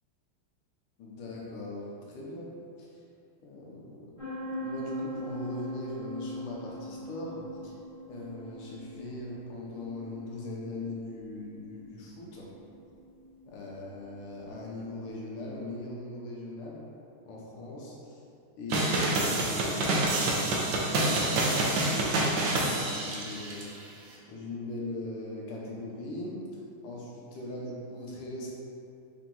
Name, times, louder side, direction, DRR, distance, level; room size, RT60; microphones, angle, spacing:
voice 1, 1.0-2.5 2.8-2.9 3.4-4.3 4.6-7.8 8.1-12.5 13.5-16.9 17.3-18.2 18.6-23.7 24.3-26.4 26.8-28.5, left 2 dB, 80° left, -4 dB, 1.7 m, -40 dB
sound 1, 4.2-15.7, equal, 15° right, 0.8 m, -42 dB
sound 2, 18.7-23.6, right 2 dB, 70° right, 1.1 m, -27 dB
4.6 x 2.9 x 3.8 m, 2.5 s
omnidirectional pair, 2.4 m